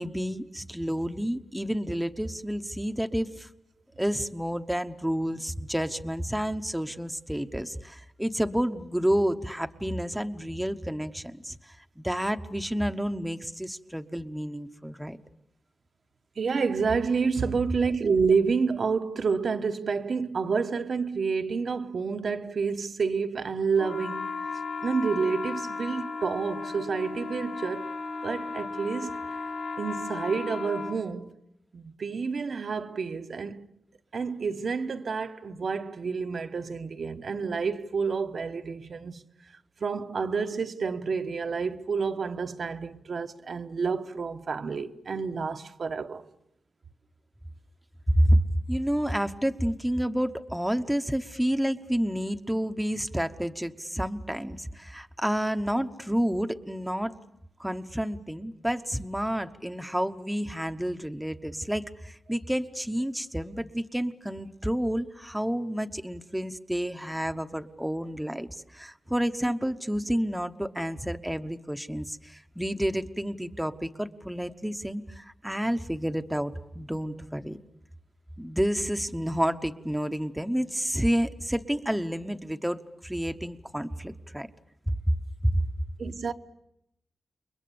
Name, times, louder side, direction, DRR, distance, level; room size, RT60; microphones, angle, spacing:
voice 1, 0.0-3.5 4.0-15.2 48.1-57.2 57.6-77.6 78.4-84.5 84.9-85.2 85.4-85.7, equal, 5° right, 1.0 m, -29 dB
voice 2, 16.4-24.4 24.8-27.9 28.2-29.2 29.8-31.4 31.7-33.7 34.1-39.2 39.8-46.3 86.0-86.3, right 5 dB, 60° right, 1.1 m, -29 dB
sound 1, 23.8-31.0, left 4 dB, 80° left, 7.6 m, -35 dB
29.5 x 23.0 x 7.1 m
wide cardioid pair, 115°, 0 cm